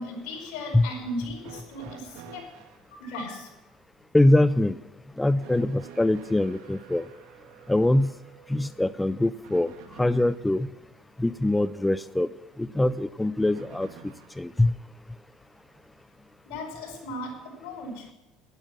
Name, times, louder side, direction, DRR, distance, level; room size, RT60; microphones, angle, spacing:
voice 1, 0.0-2.5 2.9-3.5 16.5-18.1, left 1 dB, 75° left, 0 dB, 5.2 m, -37 dB
sound 1, 1.4-2.9 5.4-10.5 13.4-14.5 15.7-15.8 16.9-17.0, right 8 dB, 80° right, 1.7 m, -49 dB
voice 2, 4.1-4.8 5.2-7.1 7.7-8.1 8.5-9.7 10.0-10.7 11.2-12.3 12.6-13.9 14.4-14.7, left 1 dB, 5° left, 14 dB, 0.4 m, -23 dB
12.5 x 11.0 x 5.9 m, 1.0 s
supercardioid pair, 115°, 0 cm